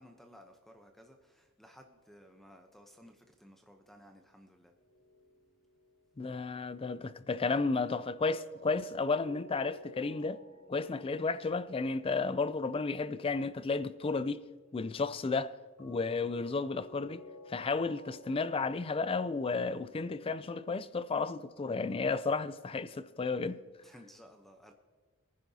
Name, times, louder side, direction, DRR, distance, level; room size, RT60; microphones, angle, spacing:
voice 1, 0.0-4.7 23.8-24.7, equal, ahead, 0.7 m, -57 dB
sound 1, 4.8-6.2 8.2-13.9 15.8-18.7, equal, 75° left, 2.8 m, -55 dB
voice 2, 6.2-10.4 10.7-14.4 14.7-15.5 15.8-17.2 17.5-23.6, left 4 dB, 25° left, 0.4 m, -33 dB
23.0 x 10.5 x 2.8 m
head